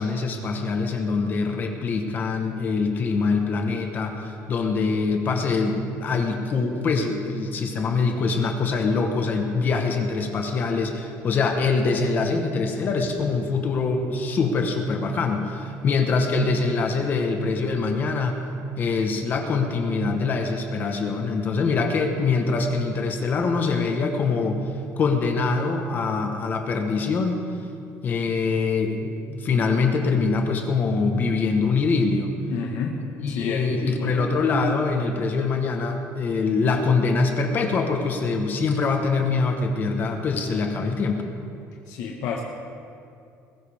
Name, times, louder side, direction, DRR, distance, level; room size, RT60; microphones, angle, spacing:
voice 1, 0.0-18.4 18.8-24.6 25.0-27.4 28.0-32.3 33.2-41.2, left 4 dB, 35° left, 4 dB, 1.2 m, -24 dB
voice 2, 32.5-33.0 33.3-34.3 41.9-42.4, left 5 dB, 70° left, -1 dB, 1.4 m, -30 dB
20.5 x 15.0 x 3.6 m, 2.5 s
cardioid pair, 170°, 6 cm